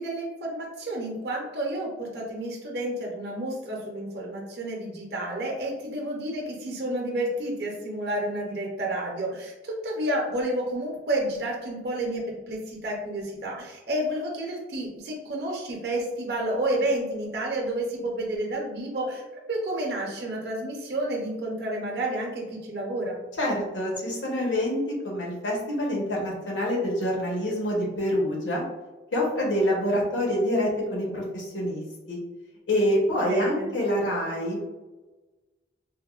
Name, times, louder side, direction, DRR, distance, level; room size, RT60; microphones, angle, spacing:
voice 1, 0.0-19.2 19.5-23.2 33.2-33.7, right 1 dB, 60° right, -1 dB, 0.6 m, -30 dB
voice 2, 23.4-28.6 29.1-32.2 32.7-34.7, equal, 85° left, -2 dB, 0.9 m, -26 dB
3.4 x 2.1 x 2.3 m, 1.1 s
head